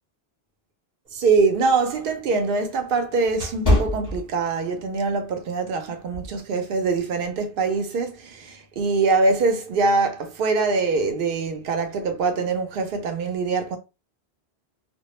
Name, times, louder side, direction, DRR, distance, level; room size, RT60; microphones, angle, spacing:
sound 1, 1.1-4.8 5.3-5.5 6.1-6.4, left 1 dB, 20° left, 0.7 m, -26 dB
voice 1, 1.1-13.8, right 4 dB, 65° right, 0.8 m, -23 dB
2.2 x 2.1 x 2.9 m
omnidirectional pair, 1.1 m